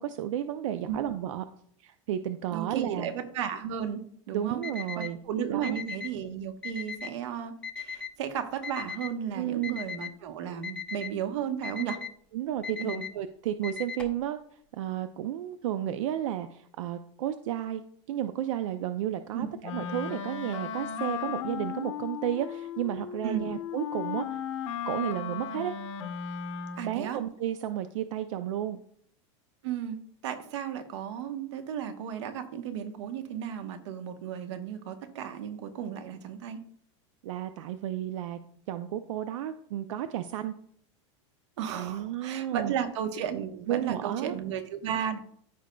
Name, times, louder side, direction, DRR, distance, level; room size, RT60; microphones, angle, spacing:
voice 1, 0.0-1.4 1.8-3.1 4.3-5.2 5.5-5.8 9.3-9.8 12.3-14.4 14.7-17.8 18.1-24.4 24.9-25.7 26.8-28.8 37.2-38.4 38.7-40.5 41.7-42.7 43.7-44.4, right 11 dB, 90° right, 10 dB, 0.5 m, -32 dB
voice 2, 2.5-4.6 5.0-12.0 12.8-13.0 19.3-19.5 23.2-23.5 26.8-27.2 29.6-36.6 41.6-45.2, right 8 dB, 65° right, 8 dB, 1.1 m, -34 dB
Alarm, 4.6-5.1 5.6-6.1 6.6-7.1 7.6-8.1 8.6-9.1 9.6-10.1 10.6-11.1 11.6-12.1 12.6-13.1 13.6-14.2, left 6 dB, 5° left, 0.3 m, -37 dB
Wind instrument woodwind instrument, 19.6-27.1, left 8 dB, 85° left, 0.8 m, -36 dB
14.5 x 5.1 x 2.3 m, 0.64 s
supercardioid pair, 180°, 16 cm